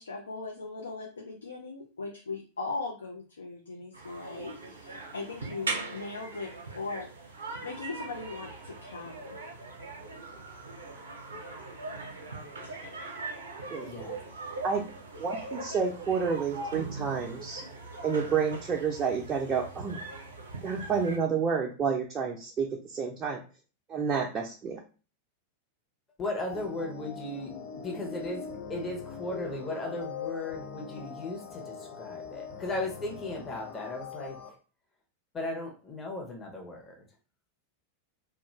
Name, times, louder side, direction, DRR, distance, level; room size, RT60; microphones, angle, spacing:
voice 1, 0.0-7.1 7.6-9.4, left 3 dB, 75° left, 0 dB, 0.4 m, -39 dB
sound 1, 3.9-21.2, right 3 dB, 70° right, 0.6 m, -40 dB
voice 2, 13.8-14.2 26.2-27.5 27.8-34.6 35.3-37.1, left 2 dB, 20° left, 1 dB, 0.7 m, -36 dB
voice 3, 15.2-17.6 18.0-20.0 20.6-23.4 23.9-24.8, right 6 dB, 25° right, 0 dB, 0.4 m, -30 dB
sound 2, 26.5-34.5, left 6 dB, 40° left, 1.1 m, -42 dB
2.4 x 2.2 x 3.0 m, 0.35 s
figure-of-eight pair, 90°, 0 cm